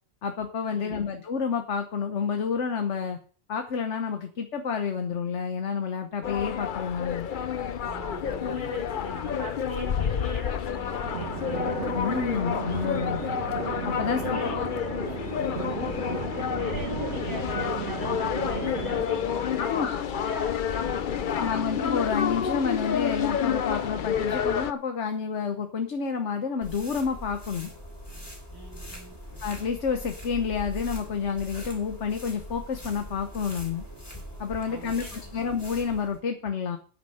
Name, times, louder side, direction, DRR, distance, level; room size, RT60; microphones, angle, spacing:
voice 1, 0.2-3.2 3.5-7.3 11.9-13.2 13.8-14.6 19.6-20.0 21.3-27.7 29.4-33.8 34.4-36.8, left 6 dB, 80° left, 6 dB, 1.4 m, -29 dB
voice 2, 0.7-1.1 7.8-13.3 13.7-15.0 15.8-16.2 16.5-21.8 28.5-29.2 34.7-35.4, right 1 dB, 20° right, -1 dB, 4.1 m, -41 dB
sound 1, 6.2-24.7, left 8 dB, 50° left, 0.8 m, -29 dB
sound 2, 11.0-19.0, right 6 dB, 75° right, 1.7 m, -35 dB
sound 3, 26.6-36.2, equal, 20° left, 3.8 m, -41 dB
10.0 x 9.4 x 5.6 m, 0.43 s
omnidirectional pair, 1.2 m